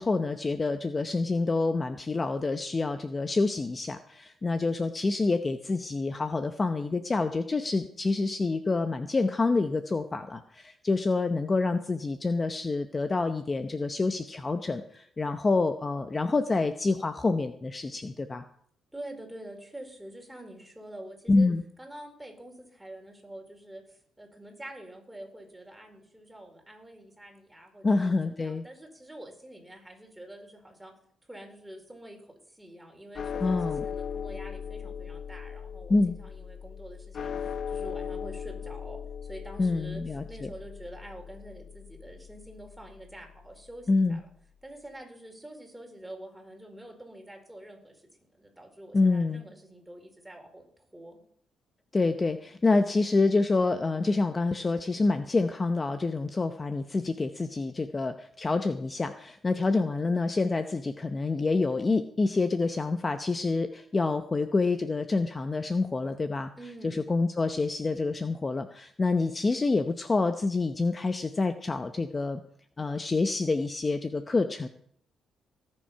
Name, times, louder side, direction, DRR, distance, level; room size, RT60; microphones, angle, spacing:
voice 1, 0.0-18.4 21.3-21.6 27.8-28.6 33.4-33.8 35.9-36.2 39.6-40.5 43.9-44.2 48.9-49.4 51.9-66.5 66.8-72.4 72.8-74.7, left 3 dB, 25° left, 9 dB, 0.8 m, -27 dB
voice 2, 18.9-21.5 21.8-30.9 31.3-44.2 44.6-48.0 48.4-50.6 50.9-51.2 66.6-67.0, right 1 dB, 5° right, 2 dB, 4.2 m, -46 dB
sound 1, 33.1-43.6, left 7 dB, 50° left, 1.0 m, -38 dB
18.5 x 7.7 x 5.7 m, 0.64 s
cardioid pair, 90°, 0 cm